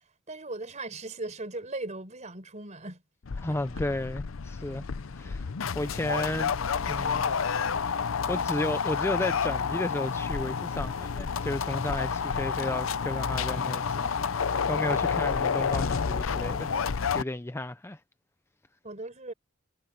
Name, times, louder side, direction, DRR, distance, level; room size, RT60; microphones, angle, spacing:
voice 1, 0.0-3.0 3.5-3.6 14.7-15.1 18.8-19.3, right 2 dB, 35° right, 5.0 m, -39 dB
sound 1, 3.3-17.2, left 6 dB, 85° left, 0.6 m, -30 dB
voice 2, 3.4-4.8 5.1-5.5 5.7-6.6 6.8-7.3 7.6-7.8 8.3-16.7 17.1-18.0, left 1 dB, 10° left, 0.6 m, -33 dB
head